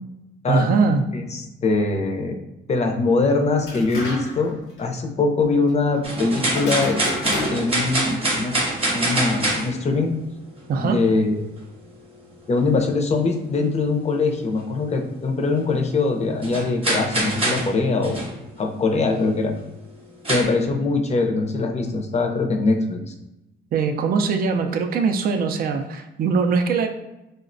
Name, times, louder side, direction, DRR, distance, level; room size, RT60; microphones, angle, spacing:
voice 1, 0.5-1.0 10.7-11.0 23.7-26.9, right 5 dB, 50° right, 6 dB, 0.4 m, -21 dB
voice 2, 1.1-2.4 2.7-7.0 7.5-8.6 8.9-10.2 10.8-11.4 12.5-18.2 18.6-19.5 20.3-23.1, left 3 dB, 35° left, 3 dB, 0.5 m, -22 dB
sound 1, 3.6-4.5 4.8-4.9 6.5-7.9, left 2 dB, 85° left, 0.9 m, -30 dB
sound 2, 6.0-10.1 14.9-15.0 15.6-15.7 16.4-17.7 18.0-18.4 19.4-19.6 20.2-20.4, right 1 dB, 30° right, 0.8 m, -24 dB
3.8 x 2.1 x 2.5 m, 0.94 s
cardioid pair, 90°, 20 cm